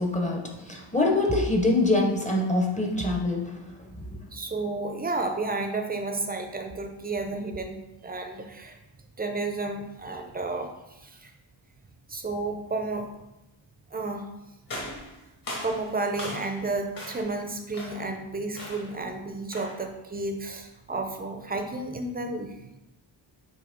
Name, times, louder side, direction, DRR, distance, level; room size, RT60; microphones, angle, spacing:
voice 1, 0.0-4.1, left 2 dB, 15° left, 0 dB, 0.8 m, -25 dB
voice 2, 4.3-8.8 9.2-11.3 12.1-13.1 13.9-14.3 15.6-22.7, right 3 dB, 20° right, 5 dB, 0.6 m, -32 dB
sound 1, 14.7-16.7 17.0-17.4 17.7-18.1 18.6-19.0 19.5-19.9, left 1 dB, 45° left, 1.6 m, -38 dB
7.7 x 2.9 x 5.1 m, 0.94 s
wide cardioid pair, 170°, 46 cm